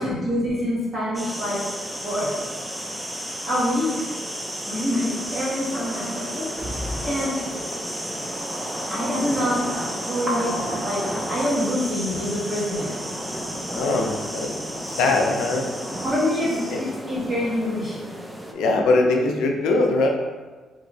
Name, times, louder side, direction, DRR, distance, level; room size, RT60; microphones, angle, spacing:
voice 1, 0.0-1.6 2.0-2.3 3.5-3.9 4.7-6.5 7.0-7.5 8.9-9.7 10.0-13.0 16.0-18.0, left 1 dB, 35° right, -7 dB, 1.4 m, -25 dB
sound 1, 1.1-18.5, equal, 5° right, 0.4 m, -32 dB
sound 2, 6.3-7.2 7.6-7.7, left 1 dB, 80° right, 0.8 m, -33 dB
voice 2, 13.7-14.6 15.0-15.7 16.7-16.8 18.6-20.1, left 2 dB, 85° left, 2 dB, 0.4 m, -21 dB
3.0 x 2.7 x 2.6 m, 1.3 s
cardioid pair, 90°, 0 cm